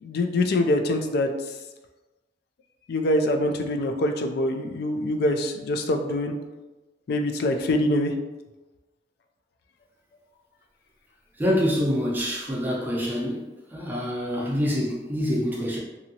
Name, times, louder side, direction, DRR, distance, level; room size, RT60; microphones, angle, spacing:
voice 1, 0.0-1.3 2.9-6.3 7.1-8.1, left 1 dB, 60° left, 6 dB, 0.3 m, -24 dB
voice 2, 11.4-15.8, equal, 10° right, -4 dB, 0.5 m, -26 dB
2.8 x 2.6 x 2.7 m, 1.1 s
head